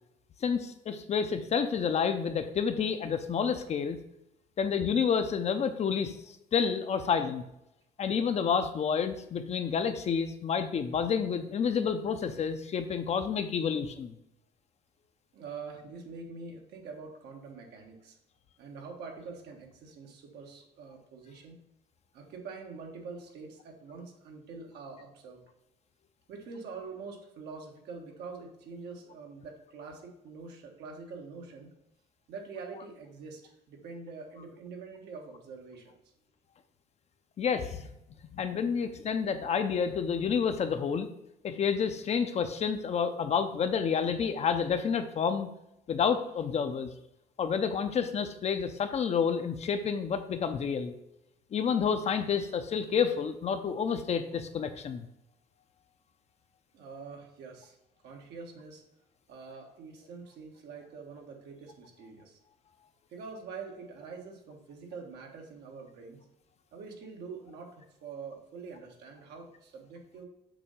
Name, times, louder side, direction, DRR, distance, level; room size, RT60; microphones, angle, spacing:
voice 1, 0.4-4.0 4.6-6.2 6.5-7.4 8.0-14.1 37.4-37.9 38.3-41.1 41.4-45.5 45.9-46.9 47.4-50.9 51.5-55.1, left 6 dB, 40° left, 9 dB, 0.6 m, -29 dB
voice 2, 15.3-18.2 18.6-21.6 22.1-25.4 26.3-31.7 32.3-35.9 56.7-57.7 58.0-58.8 59.3-62.4 63.1-66.2 66.7-70.3, right 4 dB, 75° right, 1 dB, 1.4 m, -45 dB
6.8 x 2.8 x 5.5 m, 0.85 s
cardioid pair, 110°, 17 cm